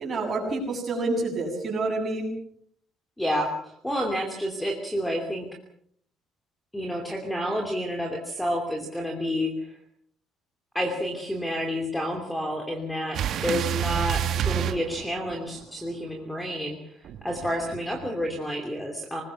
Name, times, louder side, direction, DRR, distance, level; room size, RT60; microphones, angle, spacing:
voice 1, 0.0-2.4, right 2 dB, 25° right, 1 dB, 7.5 m, -28 dB
voice 2, 3.2-5.5 6.7-9.5 10.7-19.2, equal, 5° left, 2 dB, 2.8 m, -29 dB
sound 1, 13.1-15.6 17.0-18.3, right 9 dB, 50° right, 1.4 m, -29 dB
26.5 x 20.5 x 5.8 m, 0.65 s
cardioid pair, 170°, 0 cm